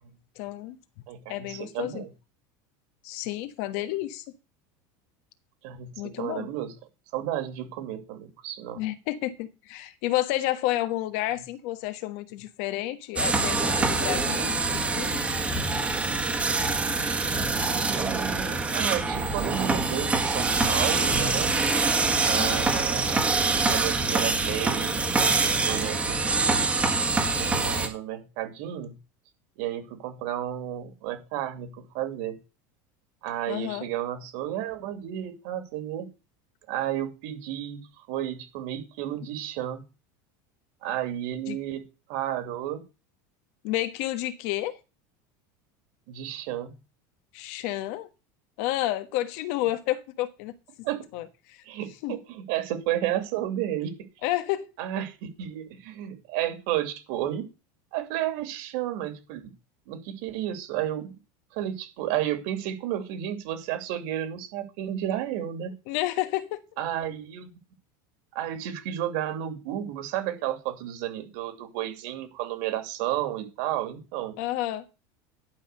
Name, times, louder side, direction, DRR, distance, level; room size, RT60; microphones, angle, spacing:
voice 1, 0.4-0.8 1.3-2.1 3.0-4.2 6.0-6.5 8.7-15.4 22.3-22.7 33.5-33.9 41.5-41.6 43.6-44.8 47.3-48.1 48.6-50.5 51.1-51.6 52.0-52.2 54.2-54.7 65.9-66.6 74.4-74.9, left 15 dB, 55° left, 1.3 m, -30 dB
voice 2, 1.1-2.1 5.6-6.7 7.1-8.8 17.7-21.5 22.1-23.3 23.7-26.7 27.2-29.0 29.6-32.4 33.2-36.1 36.7-39.8 40.8-41.8 42.1-42.8 46.1-46.7 50.8-51.0 51.7-53.9 54.8-57.5 57.9-59.5 59.9-61.1 61.5-65.7 66.8-67.6 68.3-74.3, right 12 dB, 60° right, 2.6 m, -32 dB
sound 1, 13.2-27.9, right 3 dB, 10° right, 1.5 m, -25 dB
11.0 x 5.7 x 6.6 m
supercardioid pair, 170°, 10 cm